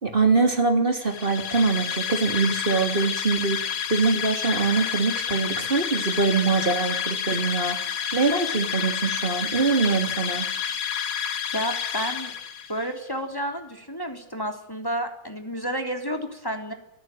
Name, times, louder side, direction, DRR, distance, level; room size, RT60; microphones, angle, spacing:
voice 1, 0.0-10.5, right 4 dB, 20° right, 5 dB, 2.7 m, -23 dB
sound 1, 1.0-12.8, left 8 dB, 75° left, 3.2 m, -29 dB
voice 2, 11.5-12.4 12.7-16.7, equal, 5° left, 4 dB, 2.9 m, -31 dB
26.5 x 17.5 x 9.1 m, 0.78 s
omnidirectional pair, 3.5 m